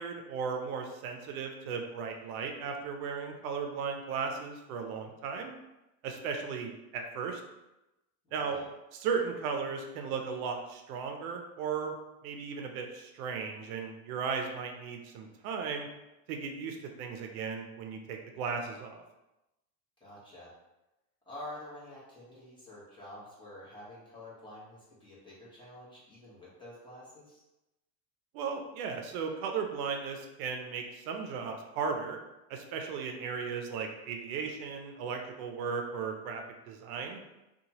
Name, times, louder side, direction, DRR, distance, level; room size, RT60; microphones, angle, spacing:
voice 1, 0.0-5.5 6.0-7.4 8.3-8.6 8.9-11.9 12.2-15.9 16.3-19.0 28.3-32.2 32.5-37.2, right 5 dB, 80° right, 3 dB, 0.6 m, -36 dB
voice 2, 8.3-8.6 20.0-20.5 21.3-27.4, left 1 dB, 10° left, -8 dB, 1.1 m, -48 dB
2.7 x 2.3 x 2.8 m, 0.97 s
supercardioid pair, 125°, 43 cm